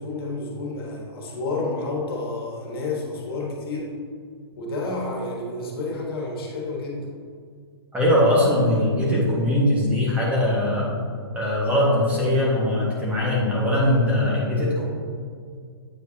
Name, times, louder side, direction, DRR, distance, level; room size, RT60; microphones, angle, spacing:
voice 1, 0.0-3.9 4.6-7.1, left 2 dB, 65° left, -2 dB, 1.6 m, -30 dB
voice 2, 7.9-11.0 11.3-14.8, left 1 dB, 10° right, -6 dB, 1.6 m, -21 dB
8.7 x 4.6 x 2.8 m, 2.1 s
hypercardioid pair, 130°, 13 cm